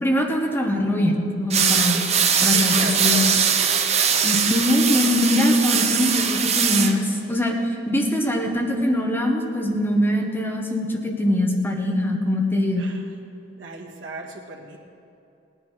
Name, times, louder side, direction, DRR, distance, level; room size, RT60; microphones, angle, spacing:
voice 1, 0.0-2.0 2.4-3.2 4.2-7.6 7.9-12.9, left 1 dB, 10° left, 1 dB, 1.4 m, -22 dB
sound 1, 1.5-6.9, right 7 dB, 35° right, 0.8 m, -21 dB
voice 2, 2.5-3.4 12.8-13.2 13.6-14.8, right 2 dB, 85° right, 0 dB, 1.8 m, -36 dB
18.0 x 10.0 x 4.8 m, 2.8 s
head